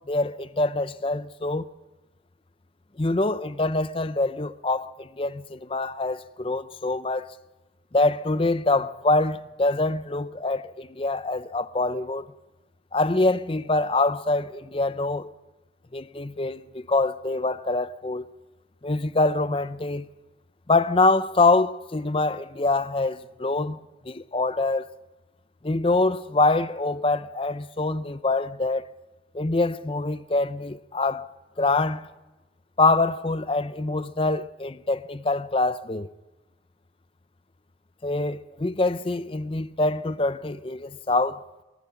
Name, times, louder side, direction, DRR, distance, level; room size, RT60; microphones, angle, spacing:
voice 1, 0.1-1.7 3.0-7.3 7.9-12.2 12.9-15.3 15.9-18.3 18.8-20.1 20.7-23.8 24.0-24.9 25.6-28.9 29.3-31.3 31.6-32.1 32.8-36.1 38.0-41.4, left 2 dB, 30° left, 0.6 m, -25 dB
23.0 x 20.5 x 5.8 m
head